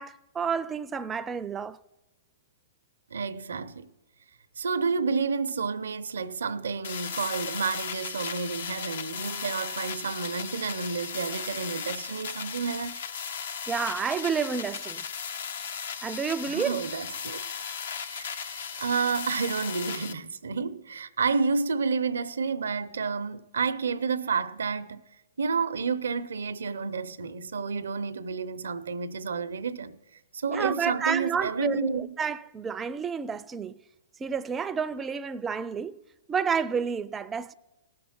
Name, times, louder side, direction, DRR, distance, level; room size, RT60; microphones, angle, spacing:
voice 1, 0.0-1.8 13.7-15.0 16.0-16.8 30.5-33.8 34.2-36.0 36.3-37.5, right 6 dB, 15° right, 0.4 m, -30 dB
voice 2, 3.1-3.9 4.6-13.0 16.5-17.4 18.0-25.0 25.4-30.0 30.3-32.2, right 5 dB, 85° right, 0.6 m, -30 dB
sound 1, 6.8-20.1, left 7 dB, 70° left, 0.6 m, -36 dB
18.0 x 6.6 x 4.3 m
hypercardioid pair, 135°, 0 cm